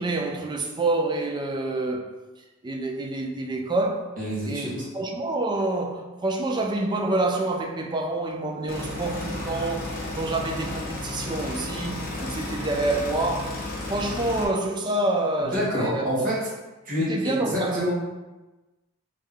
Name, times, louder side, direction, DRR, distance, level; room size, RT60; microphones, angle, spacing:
voice 1, 0.0-2.1 2.6-4.1 4.5-16.3 17.0-17.9, right 2 dB, 20° right, 0.3 m, -27 dB
voice 2, 4.2-4.9 15.5-16.3 16.8-17.9, equal, 40° right, 1.4 m, -27 dB
sound 1, 8.7-14.5, left 2 dB, 45° left, 0.8 m, -33 dB
3.5 x 3.1 x 3.6 m
head